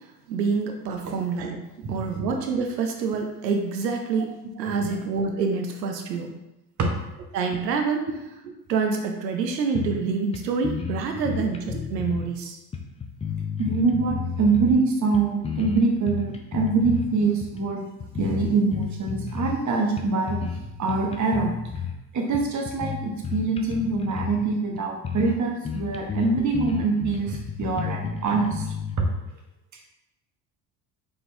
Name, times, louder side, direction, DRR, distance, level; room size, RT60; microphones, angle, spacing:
voice 1, 0.3-6.3 7.3-8.1 8.4-12.6, right 5 dB, 90° right, 3 dB, 0.6 m, -27 dB
sound 1, 9.7-10.1 10.3-10.4 10.6-12.3 12.7-14.8 15.1-17.1 17.4-17.6 18.0-19.6 20.0-20.6 20.9-21.9 22.3-24.4 24.8-24.9 25.0-25.4 25.6-28.9, left 6 dB, 15° left, 0.4 m, -32 dB
voice 2, 13.6-17.8 18.2-20.4 20.8-21.5 22.1-28.7, right 4 dB, 35° right, 1 dB, 1.1 m, -24 dB
4.3 x 3.8 x 2.7 m, 0.95 s
hypercardioid pair, 65°, 49 cm